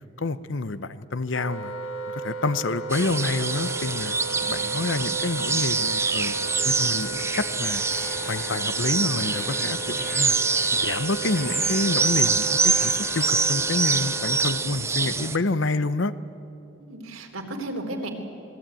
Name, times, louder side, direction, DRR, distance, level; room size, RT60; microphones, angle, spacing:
voice 1, 0.2-1.7 2.1-4.1 4.5-6.3 6.6-7.8 8.2-10.4 10.7-16.1, left 3 dB, 60° left, 15 dB, 0.8 m, -28 dB
Wind instrument woodwind instrument, 1.3-14.7, right 1 dB, 85° left, 1.4 m, -35 dB
sound 1, 2.9-15.4, right 4 dB, 15° right, 0.6 m, -25 dB
sound 2, 5.2-12.0 12.4-13.8, left 4 dB, 45° left, 3.4 m, -44 dB
voice 2, 16.8-18.1, right 1 dB, 90° right, 3 dB, 3.6 m, -34 dB
26.5 x 20.0 x 9.1 m, 2.9 s
head